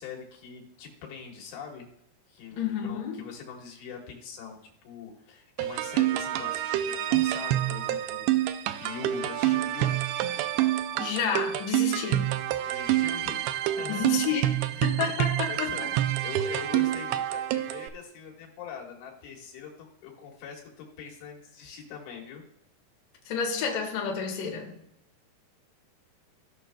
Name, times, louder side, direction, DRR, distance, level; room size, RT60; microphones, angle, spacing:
voice 1, 0.0-1.9 2.3-4.6 4.8-10.0 12.7-14.2 14.7-14.8 15.5-22.4, left 6 dB, 85° left, -1 dB, 3.7 m, -43 dB
voice 2, 2.5-3.2 11.0-12.3 13.9-14.5 14.8-15.9 23.3-24.7, left 6 dB, 60° left, -1 dB, 2.7 m, -30 dB
sound 1, 5.6-17.9, right 13 dB, 85° right, 2.2 m, -27 dB
17.0 x 6.0 x 2.2 m, 0.79 s
omnidirectional pair, 4.8 m